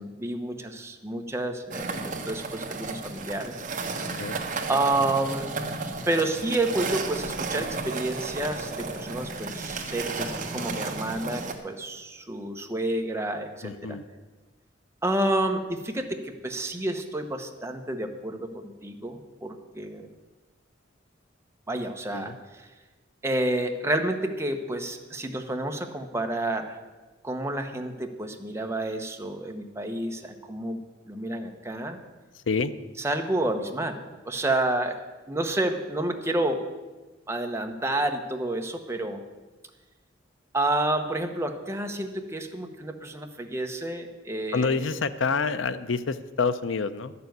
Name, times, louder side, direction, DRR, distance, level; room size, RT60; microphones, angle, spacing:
voice 1, 0.0-3.6 4.7-5.5 6.1-14.0 15.0-20.0 21.7-22.3 23.2-26.8 27.2-30.8 31.1-32.0 33.0-35.0 35.3-36.6 37.3-39.2 40.5-44.8, right 1 dB, 15° right, 4 dB, 1.0 m, -29 dB
sound 1, 1.7-11.5, right 3 dB, 45° right, 1.3 m, -33 dB
voice 2, 13.6-14.0 22.1-22.4 32.3-32.7 44.5-47.1, left 4 dB, 90° left, 13 dB, 0.6 m, -27 dB
12.0 x 6.9 x 9.3 m, 1.2 s
head